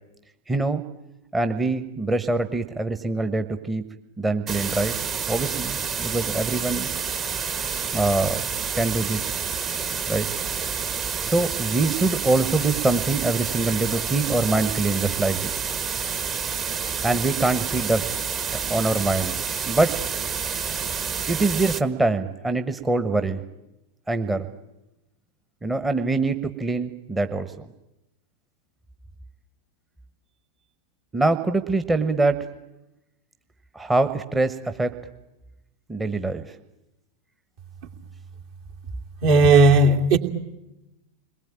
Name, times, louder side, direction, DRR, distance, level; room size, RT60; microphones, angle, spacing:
voice 1, 0.5-0.8 1.3-3.9 4.2-5.0 5.3-6.9 7.9-8.5 8.7-9.4 10.1-10.3 11.2-15.6 17.0-18.1 18.5-20.1 21.3-23.4 24.1-24.5 25.6-27.5 31.1-32.5 33.7-35.0 35.9-36.5, right 2 dB, 10° right, 1.2 m, -24 dB
sound 1, 4.5-21.8, right 6 dB, 30° right, 1.5 m, -29 dB
voice 2, 39.2-40.2, right 2 dB, 50° right, 2.7 m, -15 dB
29.5 x 21.5 x 8.9 m
figure-of-eight pair, 90°, 0 cm